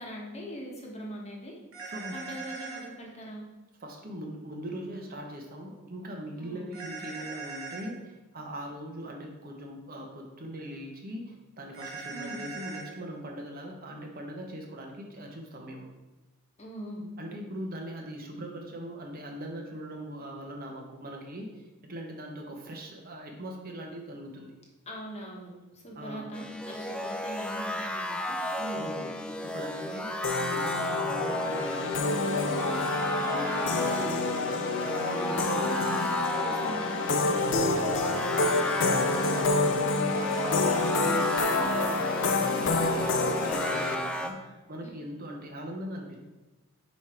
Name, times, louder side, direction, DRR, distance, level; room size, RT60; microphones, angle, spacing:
voice 1, 0.0-1.6 2.1-3.4 6.4-6.8 12.1-12.4 16.6-17.0 24.9-28.9 36.4-37.0, equal, 30° left, -1 dB, 1.2 m, -41 dB
sound 1, 1.7-2.9 6.7-7.9 11.7-12.9, right 4 dB, 60° right, 1.5 m, -40 dB
voice 2, 1.9-2.2 3.8-15.9 17.2-24.5 25.9-26.3 28.7-36.0 37.3-46.2, equal, 40° right, 1 dB, 0.9 m, -41 dB
sound 2, 26.3-44.3, equal, 5° left, 0.4 m, -33 dB
sound 3, 30.2-44.0, left 3 dB, 55° left, 0.5 m, -28 dB
5.4 x 4.8 x 4.4 m, 1.1 s
head